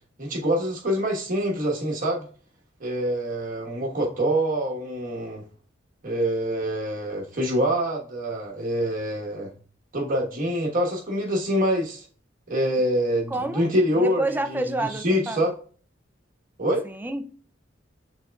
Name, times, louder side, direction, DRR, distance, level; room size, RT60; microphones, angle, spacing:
voice 1, 0.2-2.3 2.8-5.4 6.0-9.5 9.9-12.0 12.5-15.5 16.6-16.8, equal, 45° right, 1.2 m, -25 dB
voice 2, 13.3-13.7 13.9-15.5 16.8-17.3, right 2 dB, 10° right, 0.3 m, -29 dB
5.6 x 3.6 x 2.3 m
head